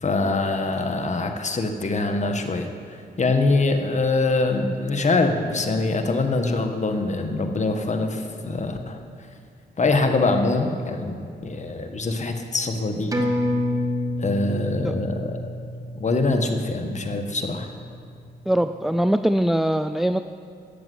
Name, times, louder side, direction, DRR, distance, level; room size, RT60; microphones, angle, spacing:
voice 1, 0.0-9.0 9.8-11.2 11.4-13.2 14.2-15.5 16.0-17.7, left 3 dB, 40° left, 5 dB, 1.7 m, -24 dB
sound 1, 13.1-18.1 18.4-18.5, left 1 dB, 20° right, 1.8 m, -29 dB
voice 2, 18.5-20.2, right 1 dB, ahead, 9 dB, 0.4 m, -22 dB
13.5 x 7.8 x 9.5 m, 2.3 s
cardioid pair, 70°, 18 cm